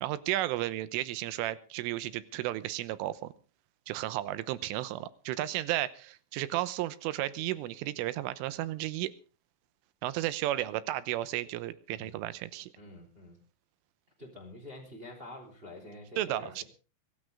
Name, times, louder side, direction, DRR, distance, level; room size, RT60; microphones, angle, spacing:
voice 1, 0.0-3.3 3.9-9.1 10.0-12.7 16.2-16.6, right 15 dB, 90° right, 15 dB, 3.5 m, -33 dB
voice 2, 12.8-13.4 14.2-16.6, left 1 dB, 15° right, 1 dB, 3.5 m, -47 dB
24.0 x 13.0 x 3.5 m, 0.34 s
omnidirectional pair, 5.5 m